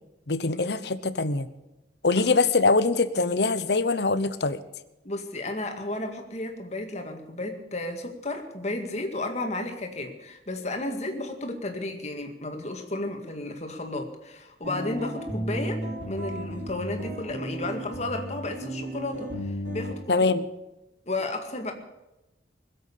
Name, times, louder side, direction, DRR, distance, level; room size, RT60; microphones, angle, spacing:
voice 1, 0.3-1.5 2.0-4.6 20.1-20.4, left 3 dB, 65° left, 13 dB, 0.9 m, -23 dB
voice 2, 5.0-20.3 21.1-21.7, left 2 dB, 40° left, 4 dB, 2.0 m, -33 dB
sound 1, 14.6-20.0, equal, 90° right, 4.5 m, -34 dB
21.0 x 8.0 x 8.5 m, 0.97 s
head